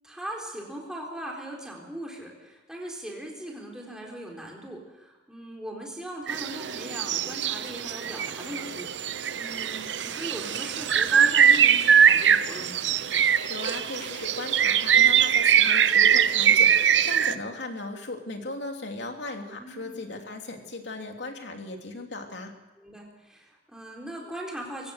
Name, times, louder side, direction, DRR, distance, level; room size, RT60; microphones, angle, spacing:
voice 1, 0.0-8.9 9.3-12.9 19.6-20.2 22.8-24.9, right 1 dB, 5° right, -1 dB, 4.1 m, -39 dB
sound 1, 6.3-17.4, right 8 dB, 75° right, 0.8 m, -22 dB
voice 2, 13.5-22.5, left 2 dB, 70° left, 3 dB, 2.8 m, -37 dB
23.0 x 17.5 x 6.6 m, 1.0 s
head